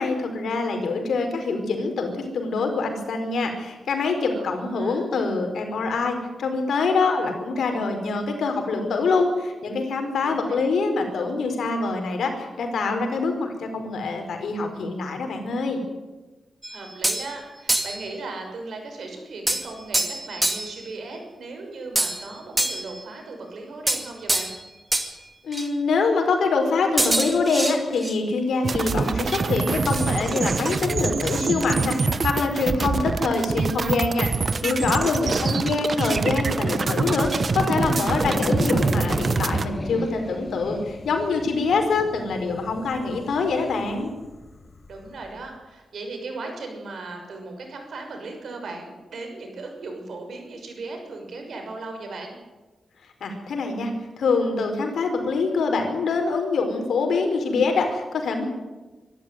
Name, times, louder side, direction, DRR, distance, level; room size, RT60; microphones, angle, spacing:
voice 1, 0.0-15.8 25.4-32.0 32.2-44.1 53.2-53.9 54.2-58.4, left 4 dB, 80° left, 5 dB, 4.7 m, -25 dB
voice 2, 4.3-5.1 10.2-10.5 16.7-24.5 35.2-35.7 44.9-52.4, right 3 dB, 65° right, 3 dB, 6.2 m, -37 dB
sound 1, 16.6-17.3 17.7-18.1 19.5-20.8 22.0-23.0 23.9-24.6 24.9-25.1 25.5-25.7 27.0-28.1, right 1 dB, 15° right, 2.3 m, -25 dB
sound 2, 28.6-39.7, right 4 dB, 40° right, 1.1 m, -25 dB
sound 3, 35.3-45.6, left 3 dB, 30° left, 1.6 m, -36 dB
24.5 x 13.0 x 9.5 m, 1.2 s
wide cardioid pair, 120°, 0 cm